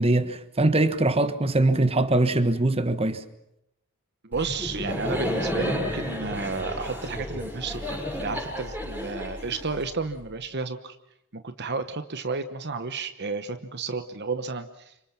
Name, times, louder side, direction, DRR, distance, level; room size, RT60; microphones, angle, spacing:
voice 1, 0.0-3.2, right 2 dB, 25° right, 1.3 m, -22 dB
voice 2, 4.2-11.0 11.3-15.1, right 4 dB, 50° right, 1.1 m, -32 dB
Laughter, 4.3-10.2, equal, 5° right, 6.9 m, -32 dB
30.0 x 26.0 x 6.0 m
head